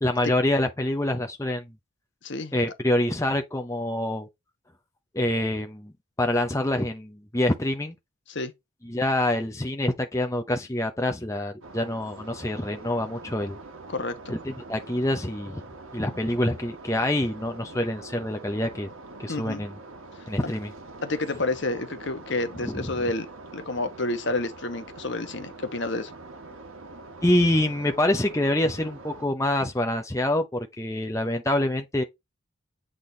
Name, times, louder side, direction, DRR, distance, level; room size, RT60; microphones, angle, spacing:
voice 1, 0.0-1.7 2.5-4.3 5.1-5.9 6.2-7.9 8.8-13.6 14.3-15.6 15.9-18.9 19.2-19.7 20.3-20.7 22.6-23.0 27.2-32.0, left 1 dB, 15° left, 0.8 m, -26 dB
voice 2, 2.2-2.6 8.3-8.5 13.9-14.3 19.3-19.6 20.4-20.5 21.0-23.3 23.5-26.1, left 2 dB, 55° left, 1.2 m, -29 dB
sound 1, 11.6-29.3, right 2 dB, 70° right, 1.4 m, -44 dB
8.3 x 3.8 x 3.9 m
head